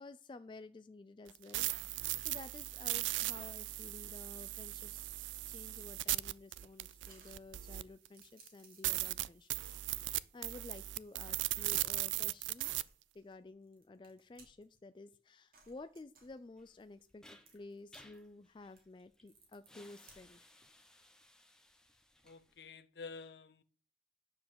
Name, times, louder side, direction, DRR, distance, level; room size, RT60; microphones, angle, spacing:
voice 1, 0.0-12.7 13.1-20.5, left 3 dB, 25° left, 0.3 m, -53 dB
sound 1, 1.3-8.1 8.5-8.6 8.8-12.8, right 17 dB, 85° right, 0.4 m, -38 dB
sound 2, 5.0-14.9 15.5-18.2 18.5-20.5, right 3 dB, 50° right, 3.0 m, -65 dB
sound 3, 16.6-22.7, left 1 dB, 5° left, 0.8 m, -62 dB
voice 2, 22.2-23.6, left 4 dB, 65° left, 0.7 m, -50 dB
9.5 x 4.6 x 7.4 m
head